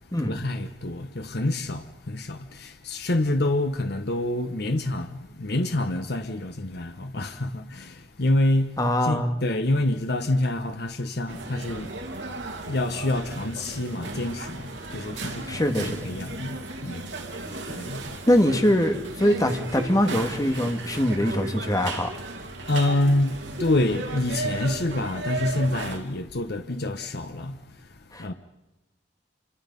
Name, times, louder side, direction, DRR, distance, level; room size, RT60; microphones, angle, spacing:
voice 1, 0.2-12.2 12.6-17.1 17.7-18.2 22.7-28.3, left 1 dB, 60° left, 1.1 m, -27 dB
voice 2, 8.8-9.4 15.5-16.1 18.3-22.1 28.1-28.3, equal, 20° left, 1.9 m, -23 dB
sound 1, 11.3-26.0, right 2 dB, 80° right, 2.6 m, -35 dB
27.5 x 25.0 x 5.4 m
head